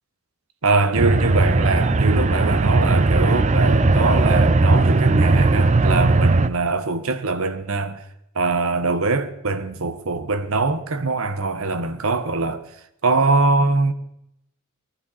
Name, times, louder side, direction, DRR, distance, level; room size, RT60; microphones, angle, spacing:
voice 1, 0.6-8.0 8.3-12.6 13.0-13.9, right 3 dB, 70° right, 1.1 m, -22 dB
sound 1, 1.0-6.5, right 2 dB, 35° right, 0.6 m, -17 dB
19.5 x 11.5 x 4.2 m
head